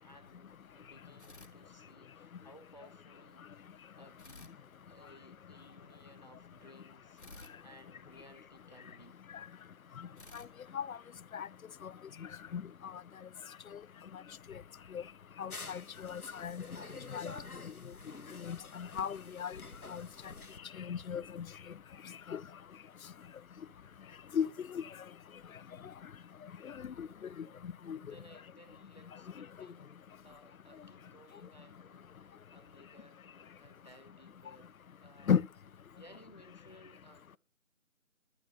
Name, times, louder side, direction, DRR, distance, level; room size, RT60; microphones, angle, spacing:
voice 1, 0.0-4.6 4.9-7.3 7.6-9.2 27.9-30.0 30.2-35.3 36.0-37.4, equal, 30° left, 1.1 m, -59 dB
sound 1, 1.2-2.3 4.2-5.6 7.2-8.9 10.2-11.7, left 2 dB, 50° left, 1.9 m, -58 dB
voice 2, 15.4-16.6 17.1-17.3 18.4-19.6 19.9-20.1 20.8-21.5 22.3-22.4 24.3-24.5 24.7-24.8 27.0-27.1 27.9-28.0 35.3-35.5, left 7 dB, 75° left, 0.5 m, -34 dB
sound 2, 15.5-20.6, left 3 dB, 90° left, 1.6 m, -48 dB
11.5 x 9.6 x 5.2 m
figure-of-eight pair, 180°, 43 cm